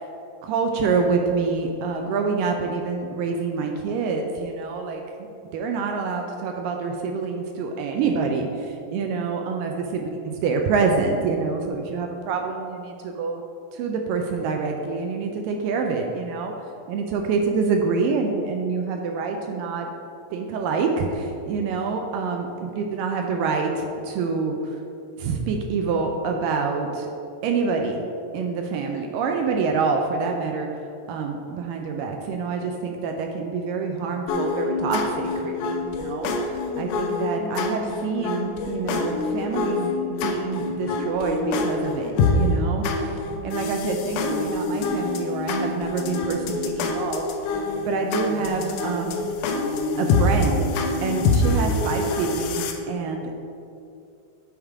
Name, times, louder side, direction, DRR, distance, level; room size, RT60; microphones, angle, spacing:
voice 1, 0.4-5.0 5.5-13.4 13.7-16.5 16.9-19.9 20.3-22.5 22.8-24.6 25.2-27.1 27.4-30.7 31.1-36.3 36.8-43.2 43.4-47.3 47.8-49.2 50.0-50.7 51.0-52.6 52.9-53.3, right 4 dB, 80° right, 3 dB, 2.0 m, -26 dB
sound 1, 34.3-52.7, left 3 dB, 80° left, 1.8 m, -26 dB
8.7 x 3.6 x 4.7 m, 2.5 s
omnidirectional pair, 4.2 m